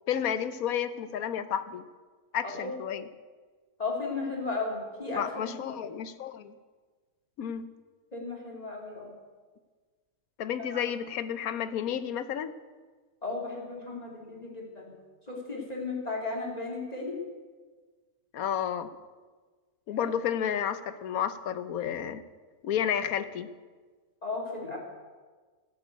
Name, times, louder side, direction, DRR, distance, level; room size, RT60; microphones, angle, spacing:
voice 1, 0.1-1.8 2.3-3.1 5.2-6.5 7.4-7.7 10.4-12.5 18.3-18.9 19.9-22.2 22.6-23.5, left 9 dB, 70° left, 12 dB, 1.2 m, -31 dB
voice 2, 3.8-5.8 8.1-9.1 10.7-10.8 13.2-14.9 15.3-17.1 20.0-20.1 24.2-24.8, left 3 dB, 25° left, -1 dB, 3.2 m, -35 dB
16.0 x 8.5 x 8.1 m, 1.4 s
omnidirectional pair, 1.7 m